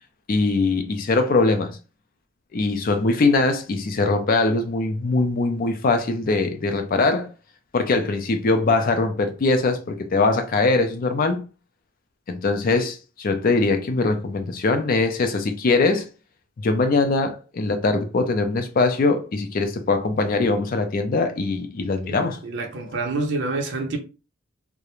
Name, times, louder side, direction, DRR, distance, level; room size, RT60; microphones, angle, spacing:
voice 1, 0.3-1.8 2.5-7.3 7.7-11.4 12.3-16.1 16.6-22.4, left 3 dB, 45° left, 0.4 m, -22 dB
voice 2, 22.1-24.0, right 3 dB, 60° right, 0.5 m, -27 dB
2.4 x 2.1 x 2.9 m
head